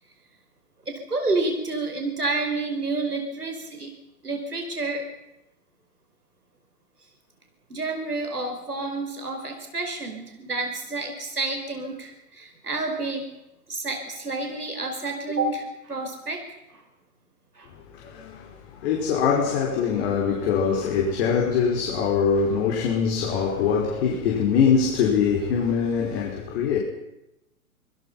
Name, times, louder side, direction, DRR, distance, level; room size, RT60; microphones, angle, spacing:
voice 1, 0.9-3.9 4.2-5.1 7.7-13.3 13.7-16.4 16.7-16.8 17.6-17.7 24.1-24.2, right 3 dB, 90° right, 5.8 m, -29 dB
voice 2, 17.9-26.8, left 6 dB, 45° left, 5.6 m, -23 dB
27.0 x 21.5 x 5.8 m
figure-of-eight pair, 120°, 45 cm